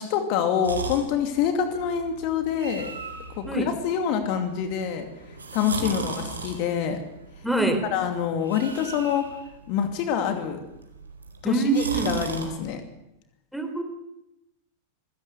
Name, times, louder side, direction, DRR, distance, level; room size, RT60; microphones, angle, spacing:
voice 1, 0.0-2.9 3.4-5.1 5.5-7.0 7.9-9.2 9.7-10.6 11.4-12.8, left 8 dB, 45° left, 6 dB, 2.6 m, -26 dB
sound 1, 0.6-12.5, right 4 dB, 75° right, 4.4 m, -38 dB
voice 2, 5.6-6.0 7.4-7.8 11.4-12.1 13.5-13.8, right 3 dB, ahead, 7 dB, 3.9 m, -25 dB
26.0 x 17.0 x 8.2 m, 0.87 s
figure-of-eight pair, 90°, 0 cm